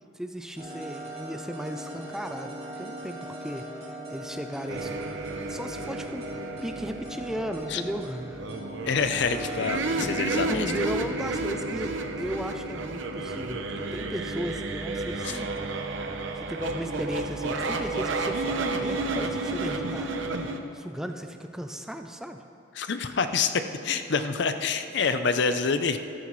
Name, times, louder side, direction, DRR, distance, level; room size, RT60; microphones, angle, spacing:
voice 1, 0.1-6.3 6.6-8.4 9.9-10.1 10.5-15.9 16.4-20.2 20.7-22.4, equal, 5° right, 6 dB, 0.4 m, -36 dB
sound 1, 0.6-10.2, equal, 35° right, 3.0 m, -39 dB
sound 2, 4.7-20.6, right 3 dB, 65° right, 0.8 m, -32 dB
voice 2, 8.9-10.7 15.2-15.4 22.7-26.0, left 5 dB, 60° left, 9 dB, 0.6 m, -27 dB
14.0 x 13.5 x 3.2 m, 2.9 s
head